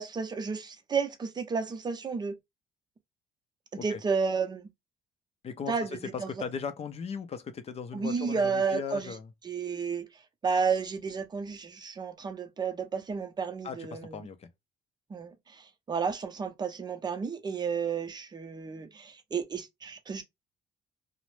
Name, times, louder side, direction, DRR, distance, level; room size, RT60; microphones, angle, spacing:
voice 1, 0.0-2.3 3.7-4.7 5.7-5.9 6.2-6.3 7.9-9.1 9.5-10.1 10.4-14.1 15.1-15.3 15.9-20.2, right 5 dB, 25° right, 0.6 m, -31 dB
voice 2, 5.4-9.3 13.6-14.5, left 6 dB, 35° left, 0.5 m, -38 dB
2.5 x 2.0 x 3.1 m
cardioid pair, 110°, 17 cm